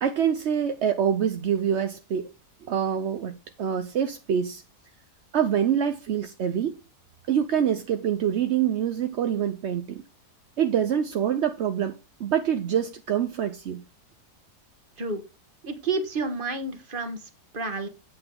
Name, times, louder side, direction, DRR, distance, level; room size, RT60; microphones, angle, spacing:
voice 1, 0.0-2.3 2.7-4.6 5.3-6.7 7.3-10.0 10.6-13.8, right 9 dB, 55° right, 0.8 m, -25 dB
voice 2, 15.7-17.2 17.5-17.9, right 3 dB, 35° right, 1.4 m, -29 dB
8.8 x 7.8 x 3.9 m
omnidirectional pair, 1.8 m